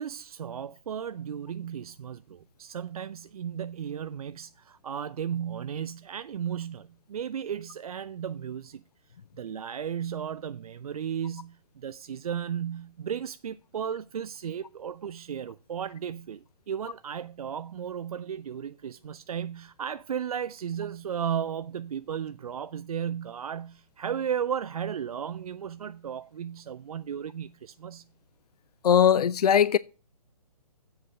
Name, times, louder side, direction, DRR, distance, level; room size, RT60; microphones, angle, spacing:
voice 1, 0.0-8.8 9.4-28.0, right 8 dB, 65° right, 0.5 m, -35 dB
voice 2, 28.8-29.8, left 8 dB, 75° left, 0.4 m, -20 dB
7.9 x 7.9 x 6.5 m
figure-of-eight pair, 140°, 20 cm